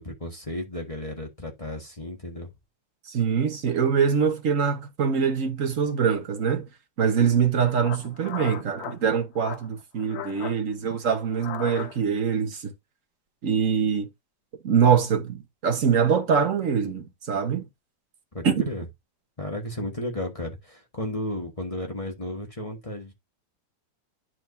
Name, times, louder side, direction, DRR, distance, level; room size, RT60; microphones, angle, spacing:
voice 1, 0.0-2.5 18.3-18.8 19.4-23.1, left 1 dB, 20° left, 1.4 m, -34 dB
voice 2, 3.1-6.7 7.0-12.7 13.4-14.1 14.6-17.6 18.4-18.6, right 7 dB, 50° right, 1.3 m, -24 dB
sound 1, 7.3-7.4 7.8-9.0 9.4-9.7 10.0-10.6 11.3-12.2, left 9 dB, 85° left, 1.7 m, -37 dB
10.5 x 4.7 x 2.6 m
omnidirectional pair, 2.1 m